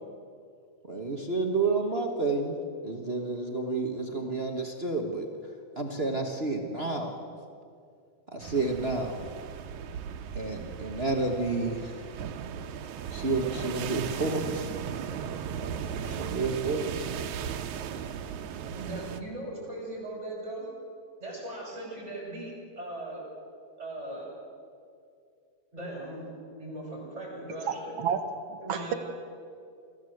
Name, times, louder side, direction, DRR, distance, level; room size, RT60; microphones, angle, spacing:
voice 1, 0.9-2.6 2.8-5.3 5.8-7.3 8.3-9.2 10.3-12.0 13.1-14.7 16.1-17.1, right 3 dB, 40° right, 3 dB, 0.9 m, -30 dB
sound 1, 8.4-19.2, right 8 dB, 85° right, 2.4 m, -37 dB
voice 2, 18.6-20.7 21.2-23.2 23.8-24.3 25.7-26.2 26.5-27.8 28.6-29.0, right 1 dB, 20° right, -2 dB, 7.5 m, -39 dB
voice 3, 27.7-28.2 28.5-28.9, right 8 dB, 60° right, 8 dB, 2.0 m, -30 dB
24.0 x 15.5 x 7.9 m, 2.3 s
omnidirectional pair, 3.3 m